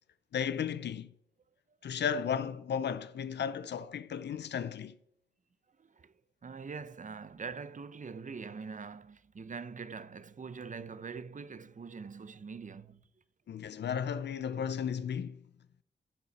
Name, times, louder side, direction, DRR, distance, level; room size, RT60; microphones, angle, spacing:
voice 1, 0.3-1.1 1.8-5.0 13.5-15.4, left 7 dB, 90° left, 0.5 m, -34 dB
voice 2, 6.4-13.0, right 5 dB, 45° right, 0.7 m, -43 dB
16.0 x 7.1 x 4.1 m
cardioid pair, 55°, 17 cm